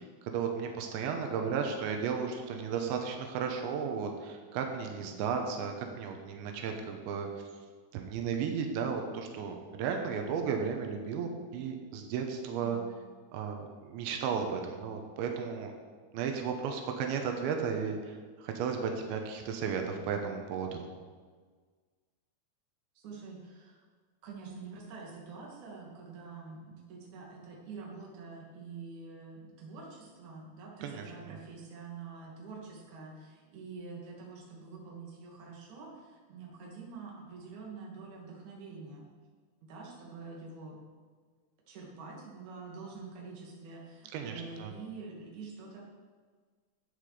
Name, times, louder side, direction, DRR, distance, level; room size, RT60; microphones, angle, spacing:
voice 1, 0.0-7.3 7.9-12.8 13.3-15.7 16.1-20.9 30.8-31.4 44.1-44.7, right 6 dB, 85° right, 4 dB, 3.4 m, -34 dB
voice 2, 12.6-13.0 22.9-23.8 24.2-39.0 39.6-40.8 41.7-45.8, right 4 dB, 50° right, -2 dB, 3.2 m, -46 dB
14.0 x 8.7 x 5.0 m, 1.5 s
omnidirectional pair, 5.1 m